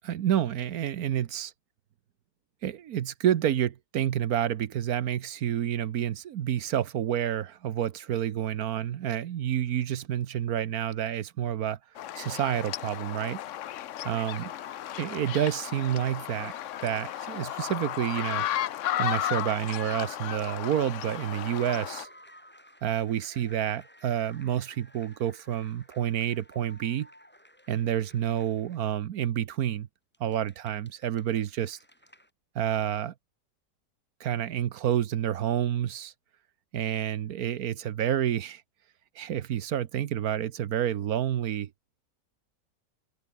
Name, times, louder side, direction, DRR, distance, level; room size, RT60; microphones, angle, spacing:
voice 1, 0.0-1.5 2.6-11.8 12.2-13.4 14.0-14.5 15.0-16.5 16.8-18.5 19.0-22.1 22.8-27.1 27.7-29.9 30.2-31.8 32.5-33.1 34.2-36.1 36.7-38.6 39.2-41.7, right 10 dB, 60° right, 1.2 m, -29 dB
sound 1, 12.0-22.0, left 12 dB, 65° left, 0.8 m, -34 dB
sound 2, 14.0-19.1 19.4-19.5 20.4-29.1 30.1-32.3, equal, 5° left, 5.8 m, -55 dB
omnidirectional pair, 1.9 m